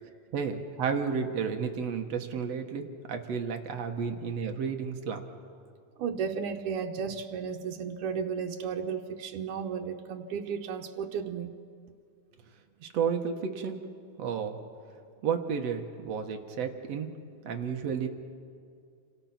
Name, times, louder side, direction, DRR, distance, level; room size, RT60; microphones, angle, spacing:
voice 1, 0.0-5.2 12.8-13.8 14.2-14.6 15.2-17.1 17.4-18.1, right 6 dB, 60° right, 5 dB, 2.4 m, -32 dB
voice 2, 6.0-11.5, right 6 dB, 90° right, 2 dB, 2.4 m, -34 dB
30.0 x 25.5 x 6.0 m, 2.3 s
omnidirectional pair, 3.4 m